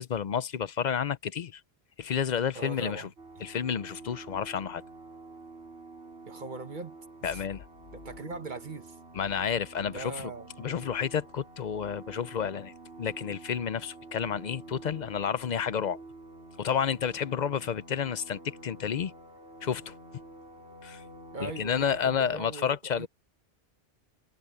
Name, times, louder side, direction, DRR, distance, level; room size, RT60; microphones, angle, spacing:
voice 1, 0.0-1.6 2.0-3.1 3.4-4.8 7.2-7.6 9.1-10.3 10.6-12.7 13.0-16.0 16.6-19.1 19.6-19.9 20.8-21.0 21.4-23.1, left 7 dB, 50° left, 0.6 m, -30 dB
voice 2, 2.5-3.1 6.3-7.4 7.9-9.0 9.9-10.9 21.3-23.1, right 3 dB, 50° right, 1.5 m, -41 dB
sound 1, 3.2-22.2, right 2 dB, 85° right, 6.3 m, -49 dB
omnidirectional pair, 1.1 m